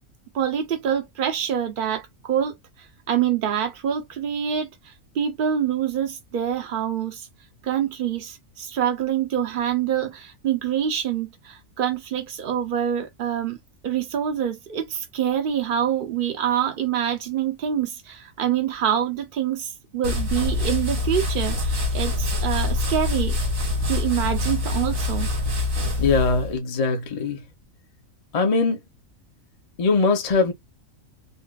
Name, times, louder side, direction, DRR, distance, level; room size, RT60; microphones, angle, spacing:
voice 1, 0.3-7.3 7.6-13.6 13.8-23.4 23.9-25.3, right 9 dB, 55° right, 0.6 m, -26 dB
sound 1, 20.0-26.5, left 2 dB, 80° right, 1.9 m, -25 dB
voice 2, 26.0-27.5 28.3-28.8 29.8-30.5, left 4 dB, 40° left, 0.5 m, -21 dB
3.9 x 2.2 x 2.3 m
omnidirectional pair, 1.4 m